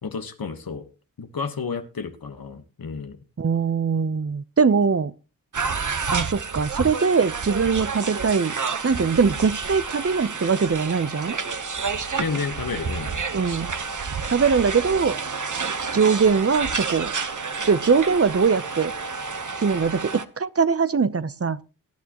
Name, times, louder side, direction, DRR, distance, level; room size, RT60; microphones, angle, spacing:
voice 1, 0.0-0.9 1.2-3.2 12.2-13.1, left 5 dB, 80° left, 1.4 m, -31 dB
voice 2, 3.4-5.1 6.1-8.5 8.8-11.4 13.3-13.7 14.3-15.1 15.9-17.1 17.7-18.9 19.6-21.6, right 5 dB, 40° right, 0.7 m, -21 dB
sound 1, 5.5-20.2, right 5 dB, 60° right, 1.2 m, -30 dB
19.0 x 11.5 x 3.0 m
cardioid pair, 50°, 35 cm